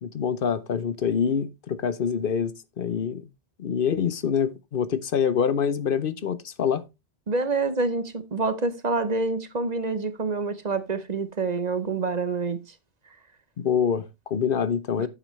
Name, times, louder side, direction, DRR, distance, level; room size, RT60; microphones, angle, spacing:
voice 1, 0.0-3.3 3.6-6.8 13.6-15.1, left 7 dB, 60° left, 0.9 m, -26 dB
voice 2, 7.3-12.6, right 3 dB, 45° right, 0.9 m, -27 dB
9.2 x 8.1 x 3.1 m
omnidirectional pair, 1.1 m